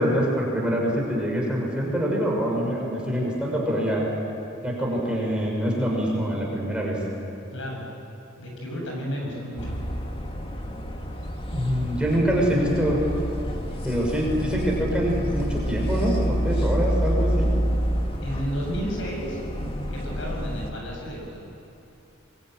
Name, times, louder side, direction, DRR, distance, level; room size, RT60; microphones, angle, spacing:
voice 1, 0.0-4.1 4.6-7.0 11.5-13.0 13.8-17.5, equal, 5° right, -2 dB, 6.0 m, -25 dB
voice 2, 7.5-7.9 8.4-9.8 18.2-19.4 19.9-21.5, equal, 65° left, 0 dB, 7.7 m, -32 dB
sound 1, 9.6-20.7, equal, 25° left, 2.1 m, -28 dB
25.0 x 23.0 x 9.3 m, 2.9 s
head